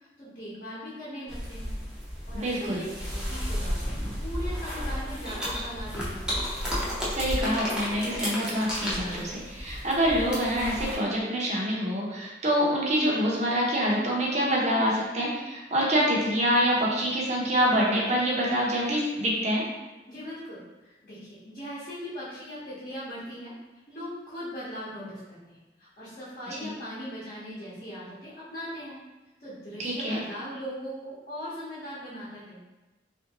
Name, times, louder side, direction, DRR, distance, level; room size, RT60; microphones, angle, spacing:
voice 1, 0.2-1.7 2.3-4.0 4.2-6.3 20.1-23.5 23.9-29.0 29.4-32.6, equal, 45° left, -10 dB, 1.0 m, -39 dB
sound 1, 1.3-11.0, equal, 5° right, 0.7 m, -33 dB
voice 2, 2.3-2.8 7.0-19.6 26.6-26.7 29.8-30.2, equal, 40° right, -4 dB, 0.8 m, -26 dB
3.3 x 2.6 x 2.9 m, 1.1 s
head